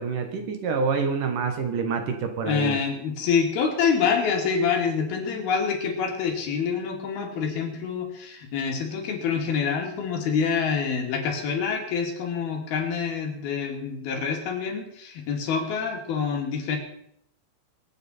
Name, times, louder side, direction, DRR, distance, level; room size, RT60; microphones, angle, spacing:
voice 1, 0.0-2.8, right 5 dB, 65° right, 6 dB, 2.6 m, -27 dB
voice 2, 2.5-16.8, left 6 dB, 75° left, 1 dB, 4.2 m, -26 dB
25.0 x 8.9 x 4.3 m, 0.74 s
omnidirectional pair, 4.5 m